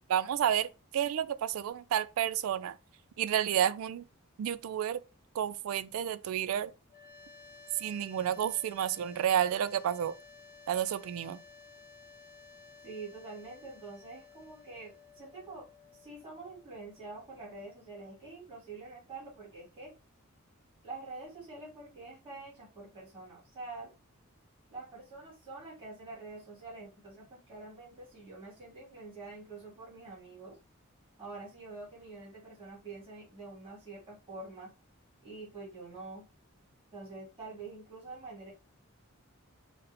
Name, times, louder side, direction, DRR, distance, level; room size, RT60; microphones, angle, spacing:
voice 1, 0.1-2.7 3.2-4.0 4.4-5.0 5.3-6.7 7.8-10.1 10.7-11.4, right 10 dB, 70° right, 0.3 m, -30 dB
sound 1, 6.9-18.0, left 4 dB, 40° left, 0.4 m, -55 dB
voice 2, 12.8-15.7 15.9-19.9 20.8-23.9 24.7-30.6 31.2-34.7 35.2-36.2 36.9-38.5, right 3 dB, 25° right, 1.7 m, -46 dB
4.0 x 2.1 x 3.9 m
head